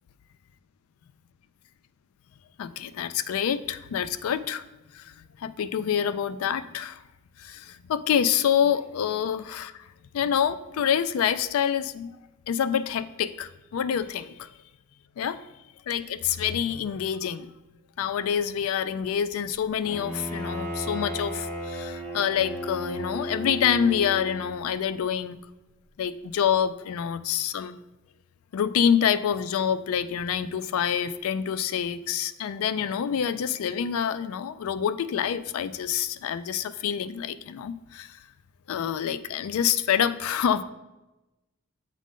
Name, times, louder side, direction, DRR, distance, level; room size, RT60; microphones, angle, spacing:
voice 1, 2.6-4.6 4.9-7.0 7.4-9.9 10.1-12.1 12.5-14.5 15.2-15.4 15.9-17.5 18.0-25.4 26.0-27.8 28.5-38.2 38.7-40.6, left 8 dB, 70° left, 14 dB, 0.3 m, -27 dB
Bowed string instrument, 19.8-24.7, equal, 5° left, 1.0 m, -34 dB
7.4 x 3.7 x 3.6 m, 1.0 s
head